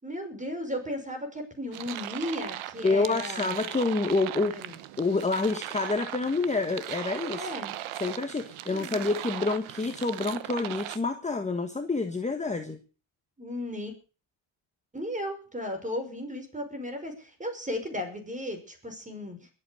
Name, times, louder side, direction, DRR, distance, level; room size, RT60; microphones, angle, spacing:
voice 1, 0.0-3.5 4.5-4.7 7.3-7.8 8.7-9.0 13.4-13.9 14.9-19.5, left 1 dB, 15° right, 6 dB, 5.6 m, -35 dB
sound 1, 1.7-11.0, right 14 dB, 80° right, 1.2 m, -38 dB
voice 2, 2.8-4.6 5.0-7.5 8.0-12.8, left 3 dB, 15° left, 6 dB, 1.5 m, -28 dB
22.0 x 8.4 x 6.6 m, 0.37 s
cardioid pair, 105°, 48 cm